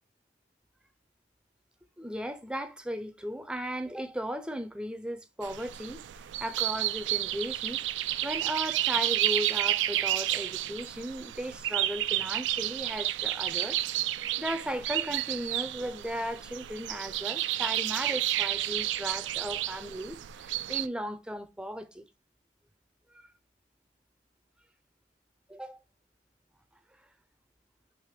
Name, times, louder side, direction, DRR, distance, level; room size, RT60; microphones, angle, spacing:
voice 1, 2.0-6.0 6.4-7.8 8.2-13.8 14.1-22.0 25.5-25.8, equal, 5° right, 0.5 m, -36 dB
sound 1, 5.4-20.9, right 14 dB, 80° right, 0.3 m, -31 dB
4.9 x 3.0 x 3.4 m
head